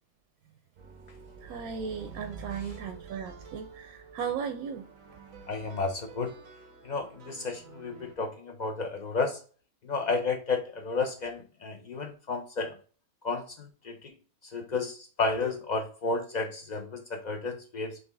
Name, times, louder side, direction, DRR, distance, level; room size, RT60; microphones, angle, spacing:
sound 1, 0.8-8.2, right 4 dB, 65° right, 1.3 m, -48 dB
voice 1, 1.4-4.9, right 7 dB, 90° right, 6 dB, 1.1 m, -36 dB
voice 2, 5.5-6.3 6.8-9.4 9.8-12.8 13.2-14.1 14.5-18.0, left 4 dB, 75° left, 3 dB, 0.4 m, -32 dB
4.0 x 3.0 x 3.4 m, 0.40 s
omnidirectional pair, 1.5 m